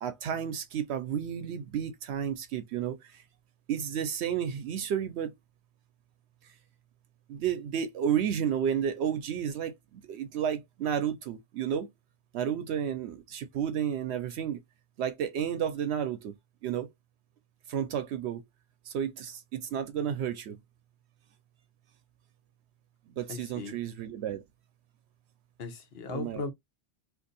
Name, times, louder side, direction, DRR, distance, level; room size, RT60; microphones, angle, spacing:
voice 1, 0.0-3.2 3.7-5.3 7.3-11.9 12.3-14.6 15.0-16.3 16.6-16.9 17.7-18.4 18.9-20.6 23.2-24.4 26.1-26.5, right 8 dB, 80° right, 0.8 m, -32 dB
voice 2, 23.3-23.8 25.6-26.5, left 4 dB, 70° left, 1.0 m, -37 dB
2.6 x 2.5 x 3.9 m
omnidirectional pair, 1.1 m